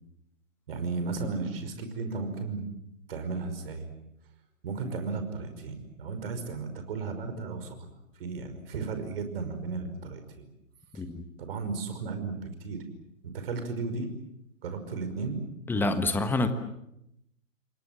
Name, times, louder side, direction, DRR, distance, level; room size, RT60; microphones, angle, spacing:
voice 1, 0.7-2.7 3.1-3.9 4.6-7.9 8.1-10.5 10.9-11.0 11.4-12.8 13.2-14.1 14.6-15.4, right 4 dB, 45° right, 8 dB, 5.5 m, -34 dB
voice 2, 15.7-16.5, left 2 dB, 5° left, 9 dB, 1.4 m, -27 dB
29.0 x 23.0 x 7.5 m, 0.82 s
figure-of-eight pair, 130°, 40 cm